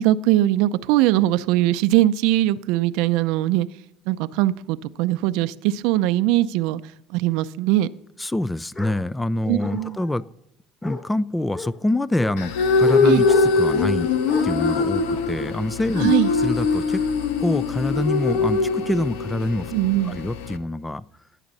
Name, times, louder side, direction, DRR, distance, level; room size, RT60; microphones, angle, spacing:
voice 1, 0.0-3.7 4.1-6.8 7.1-7.9 9.5-10.0 13.0-13.2 16.0-16.3 19.7-20.2, right 15 dB, 75° right, 13 dB, 0.6 m, -21 dB
voice 2, 8.2-10.3 10.8-14.1 14.4-16.1 16.4-17.0 17.4-19.7 20.0-21.0, left 1 dB, 10° left, 19 dB, 0.5 m, -25 dB
Bark, 8.7-9.0 9.6-10.1 10.8-11.0 11.5-11.7 12.2-12.4 12.8-13.0 13.3-13.9 14.3-14.4, left 2 dB, 25° left, 3.4 m, -34 dB
sound 1, 12.4-20.6, left 4 dB, 90° left, 1.2 m, -22 dB
15.0 x 11.0 x 4.1 m, 0.75 s
cardioid pair, 120°, 0 cm